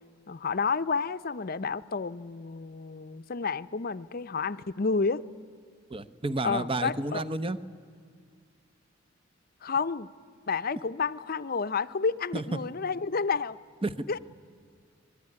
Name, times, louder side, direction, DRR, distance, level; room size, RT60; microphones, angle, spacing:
voice 1, 0.3-5.2 6.4-7.2 9.6-10.1 10.5-13.6 14.1-14.2, left 4 dB, 50° left, 13 dB, 0.6 m, -30 dB
voice 2, 5.9-7.6 12.3-12.6 13.8-14.0, right 2 dB, 25° right, 12 dB, 0.8 m, -31 dB
25.5 x 22.0 x 9.7 m, 2.1 s
head